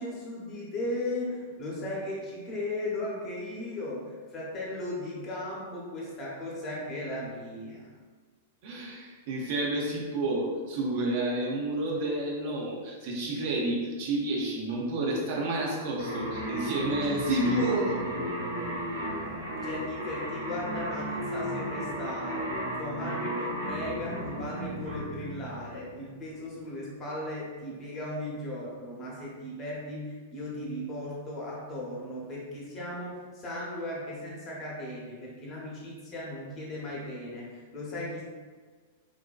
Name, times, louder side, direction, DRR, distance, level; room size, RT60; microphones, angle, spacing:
voice 1, 0.0-7.9 19.5-38.2, left 1 dB, 35° left, -5 dB, 0.8 m, -37 dB
voice 2, 8.6-18.7, right 1 dB, 55° right, -2 dB, 0.6 m, -30 dB
sound 1, 16.0-26.1, equal, 85° right, 0.9 m, -34 dB
2.5 x 2.2 x 2.3 m, 1.5 s
hypercardioid pair, 110°, 0 cm